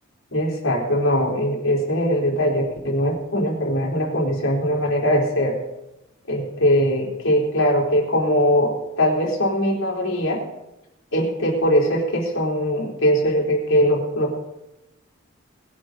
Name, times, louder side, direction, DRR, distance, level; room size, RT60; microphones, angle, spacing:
voice 1, 0.3-5.6 6.3-10.4 11.1-14.4, equal, 80° left, -1 dB, 4.0 m, -21 dB
20.5 x 10.5 x 4.0 m, 0.92 s
head